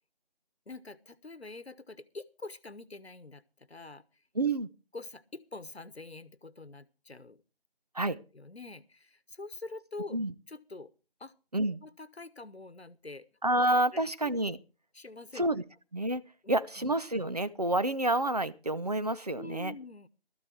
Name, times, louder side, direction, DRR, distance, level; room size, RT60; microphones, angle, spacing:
voice 1, 0.7-4.0 4.9-7.4 8.3-10.2 10.5-10.9 11.2-11.3 11.8-13.3 13.9-14.3 14.9-15.5 16.4-16.9 19.4-20.1, left 3 dB, 90° left, 16 dB, 1.3 m, -45 dB
voice 2, 4.3-4.7 7.9-8.2 10.1-10.3 11.5-11.8 13.4-14.6 15.4-15.6 15.9-19.8, right 1 dB, 40° right, 14 dB, 0.7 m, -29 dB
13.5 x 12.5 x 4.5 m, 0.34 s
figure-of-eight pair, 165°, 31 cm